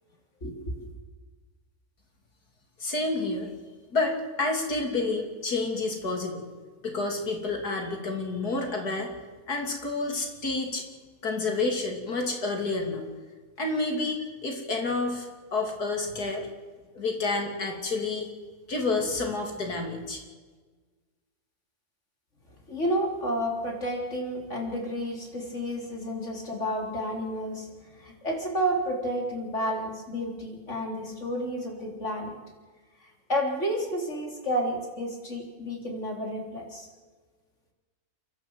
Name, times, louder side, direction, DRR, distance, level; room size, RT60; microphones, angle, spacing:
voice 1, 0.4-0.7 22.7-27.7 28.2-32.3 33.3-36.9, equal, 50° left, 1 dB, 4.1 m, -30 dB
voice 2, 2.8-3.5 3.9-6.4 6.8-9.1 9.5-10.8 11.2-13.0 13.6-15.3 15.5-16.5 16.9-18.3 18.7-20.2, left 3 dB, 85° left, 3 dB, 3.6 m, -29 dB
29.5 x 12.0 x 8.1 m, 1.4 s
omnidirectional pair, 1.6 m